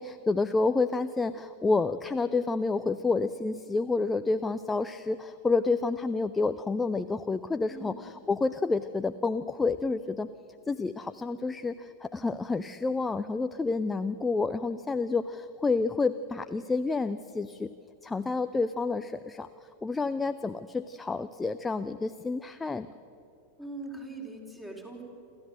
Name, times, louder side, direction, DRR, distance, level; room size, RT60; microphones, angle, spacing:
voice 1, 0.0-10.3 10.7-17.7 18.0-19.5 19.8-22.9, left 3 dB, 10° left, 11 dB, 0.5 m, -29 dB
voice 2, 7.7-8.0 23.6-25.0, right 2 dB, 10° right, 1 dB, 4.3 m, -41 dB
28.5 x 13.5 x 7.8 m, 2.7 s
figure-of-eight pair, 90°, 0 cm